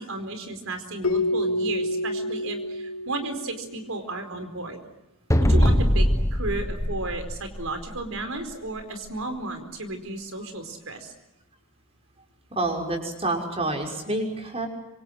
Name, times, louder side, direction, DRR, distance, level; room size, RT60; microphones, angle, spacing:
voice 1, 0.0-4.8 5.4-11.1, right 2 dB, 80° right, 7 dB, 4.6 m, -33 dB
Keyboard (musical), 1.0-3.9, left 1 dB, 85° left, 2.7 m, -28 dB
sound 1, 5.3-8.0, equal, 15° left, 1.2 m, -22 dB
voice 2, 12.5-14.7, right 2 dB, 30° right, 3 dB, 5.9 m, -28 dB
26.5 x 26.0 x 7.9 m, 0.95 s
head